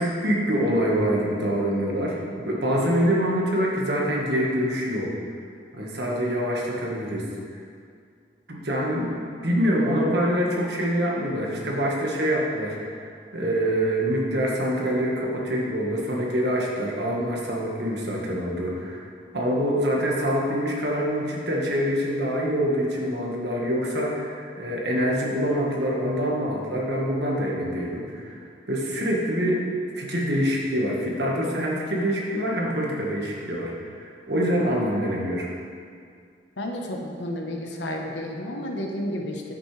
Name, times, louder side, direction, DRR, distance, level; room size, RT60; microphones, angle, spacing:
voice 1, 0.0-5.1 5.7-7.3 8.5-9.2 9.4-19.0 19.3-28.4 28.7-29.6 29.9-35.5, equal, 60° right, -2 dB, 1.5 m, -25 dB
voice 2, 36.6-39.4, left 1 dB, 75° left, 1 dB, 1.1 m, -31 dB
9.7 x 8.7 x 3.3 m, 2.3 s
head